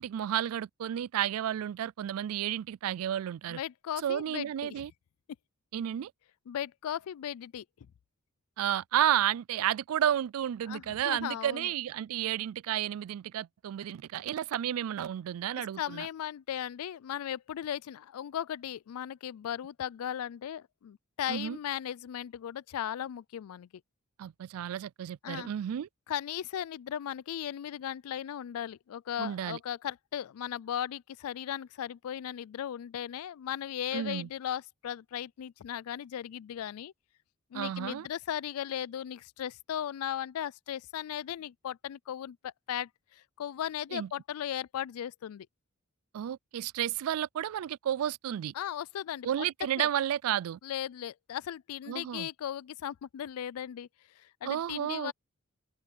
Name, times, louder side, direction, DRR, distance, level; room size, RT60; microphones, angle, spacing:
voice 1, 0.0-3.6 4.0-4.9 5.7-6.1 8.6-16.1 21.3-21.6 24.2-25.9 29.2-29.6 33.9-34.3 37.5-38.1 43.9-44.1 46.1-48.5 49.2-50.6 51.9-52.3 54.4-55.1, right 10 dB, 75° right, 0.3 m, -32 dB
voice 2, 3.5-4.9 6.5-7.6 10.7-11.7 15.5-23.7 25.2-25.5 26.1-36.9 37.5-45.5 48.5-49.5 49.8-49.9 50.6-53.9 54.2-55.1, left 10 dB, 80° left, 0.3 m, -37 dB
open air
head